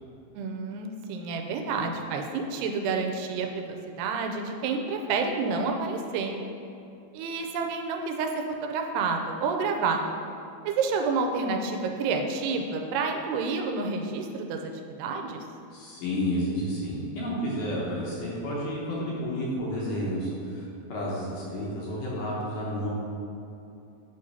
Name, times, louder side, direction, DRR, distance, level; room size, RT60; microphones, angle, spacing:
voice 1, 0.3-6.4 7.1-8.3 8.6-10.2 10.7-14.7 15.0-15.4, right 4 dB, 90° right, 3 dB, 2.7 m, -29 dB
voice 2, 15.7-22.9, equal, 65° left, -5 dB, 2.3 m, -31 dB
8.2 x 3.8 x 5.5 m, 2.8 s
omnidirectional pair, 4.6 m